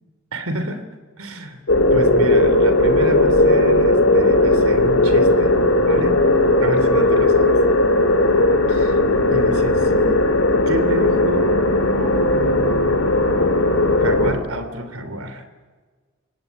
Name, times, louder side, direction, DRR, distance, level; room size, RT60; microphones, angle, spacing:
voice 1, 0.3-0.8 1.2-1.6 1.9-5.5 5.8-6.2 6.6-7.6 8.7-9.0 9.3-10.2 10.7-11.6 12.0-13.2 14.0-15.4, right 1 dB, 85° right, 10 dB, 3.2 m, -29 dB
sound 1, 1.7-14.3, left 2 dB, 65° left, 2.8 m, -16 dB
29.0 x 17.0 x 8.6 m, 1.5 s
head